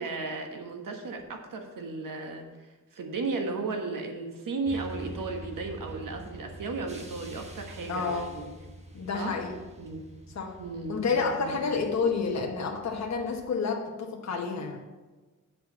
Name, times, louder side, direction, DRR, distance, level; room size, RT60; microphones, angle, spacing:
voice 1, 0.0-8.5 9.1-9.4 9.8-10.0 10.6-11.6, right 3 dB, 80° right, 3 dB, 1.4 m, -35 dB
sound 1, 4.6-13.4, right 1 dB, 20° right, 1.1 m, -46 dB
voice 2, 7.9-8.3 8.9-9.5 10.3-10.5 10.9-14.8, left 5 dB, 55° left, 1 dB, 1.1 m, -29 dB
7.9 x 5.0 x 7.4 m, 1.2 s
wide cardioid pair, 135°, 32 cm